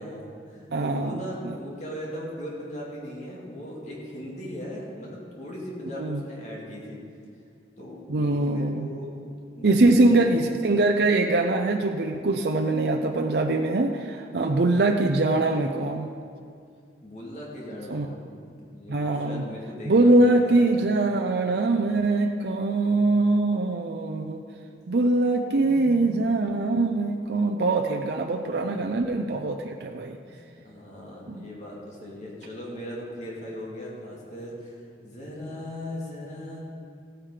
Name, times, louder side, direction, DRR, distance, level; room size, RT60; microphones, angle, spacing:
voice 1, 0.0-7.0 7.8-9.1 9.5-10.4 14.4-14.6 17.0-20.7 25.5-26.5 28.6-28.8 30.3-34.8 35.0-36.6, equal, 40° left, -4 dB, 2.6 m, -39 dB
voice 2, 0.7-1.6 5.9-6.2 8.1-8.9 9.6-16.1 17.9-18.1 18.9-19.4 19.9-24.4 24.9-30.2 31.3-31.5, right 2 dB, 65° right, 3 dB, 0.6 m, -23 dB
15.0 x 9.1 x 5.0 m, 2.3 s
head